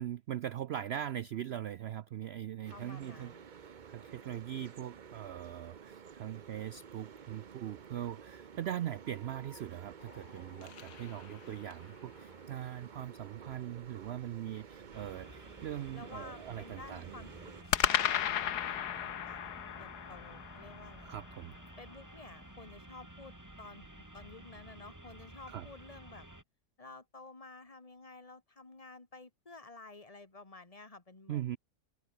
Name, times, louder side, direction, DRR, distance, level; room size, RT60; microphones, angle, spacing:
voice 1, 0.0-3.3 3.9-17.2 21.1-21.5 25.5-25.7 31.3-31.6, right 11 dB, 80° right, 0.5 m, -41 dB
sound 1, 2.6-17.6, right 7 dB, 40° right, 0.7 m, -52 dB
voice 2, 2.7-3.5 15.9-17.5 17.8-18.0 18.3-21.2 21.8-26.3 26.8-31.6, left 3 dB, 20° left, 2.4 m, -52 dB
sound 2, 10.0-11.9 17.7-22.0, left 10 dB, 90° left, 1.6 m, -35 dB
sound 3, 14.9-26.4, right 1 dB, 10° right, 2.4 m, -52 dB
omnidirectional pair, 1.7 m